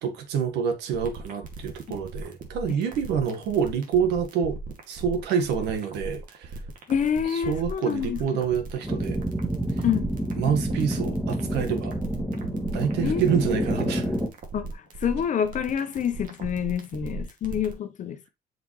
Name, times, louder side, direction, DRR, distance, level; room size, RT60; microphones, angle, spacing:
voice 1, 0.0-4.6 4.9-6.5 7.3-9.2 9.8-9.9 10.3-11.9 12.5-14.1, right 7 dB, 85° right, 1.6 m, -27 dB
sound 1, 0.9-17.7, right 3 dB, 55° right, 2.3 m, -38 dB
voice 2, 6.9-8.2 9.8-10.1 13.0-13.3 14.5-18.3, left 8 dB, 50° left, 1.0 m, -27 dB
sound 2, 8.8-14.3, equal, 5° right, 2.0 m, -28 dB
7.9 x 5.2 x 3.2 m
cardioid pair, 110°, 17 cm